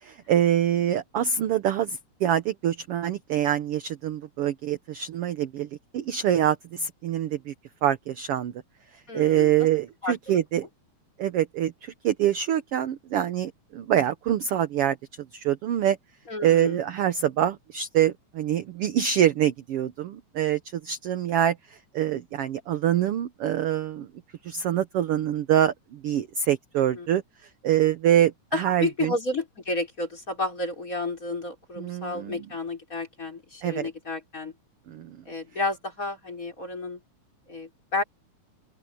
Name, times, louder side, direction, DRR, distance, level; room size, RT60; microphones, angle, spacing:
voice 1, 0.1-5.7 5.9-7.5 7.8-8.5 9.1-10.7 11.2-15.0 15.3-16.0 16.4-21.6 21.9-24.1 24.4-27.2 27.6-29.1 31.8-32.4 33.6-33.9 34.9-35.2, right 10 dB, 65° right, 1.5 m, -25 dB
voice 2, 9.1-9.7 10.0-10.4 16.3-16.8 26.9-27.1 28.5-34.5 35.3-37.0 37.5-38.0, left 2 dB, 25° left, 5.3 m, -31 dB
open air
omnidirectional pair, 3.4 m